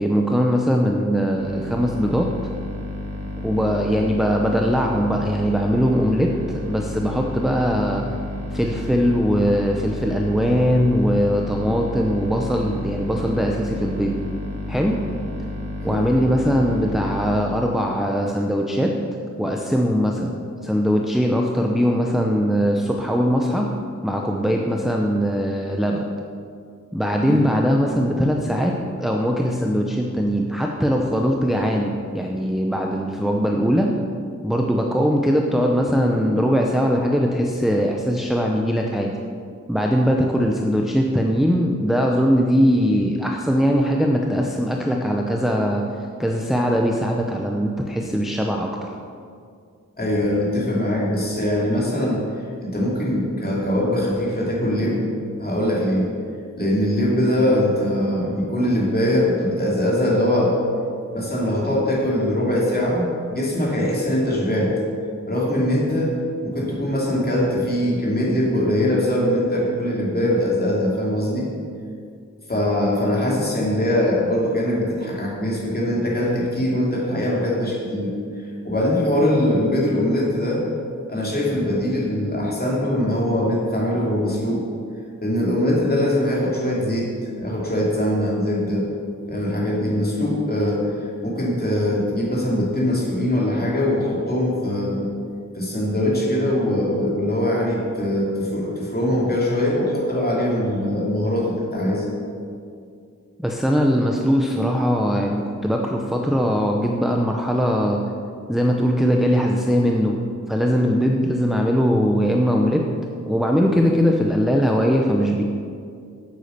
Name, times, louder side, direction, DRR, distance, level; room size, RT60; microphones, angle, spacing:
voice 1, 0.0-2.3 3.4-8.0 8.5-14.2 14.7-15.0 15.8-18.9 19.4-23.7 24.0-26.0 26.9-28.7 29.0-33.9 34.4-39.1 39.7-45.8 46.2-48.9 103.4-108.0 108.5-110.2 110.5-112.9 113.3-115.4, equal, ahead, 0 dB, 0.7 m, -21 dB
sound 1, 1.4-17.4, left 2 dB, 60° right, 2.2 m, -32 dB
voice 2, 50.0-55.1 55.4-56.1 56.5-60.6 61.1-64.7 65.3-71.5 72.5-78.1 78.4-80.7 81.1-84.6 85.2-88.9 89.3-95.1 95.5-102.1, left 1 dB, 30° left, -4 dB, 2.8 m, -22 dB
8.5 x 8.3 x 6.6 m, 2.3 s
wide cardioid pair, 120°, 30 cm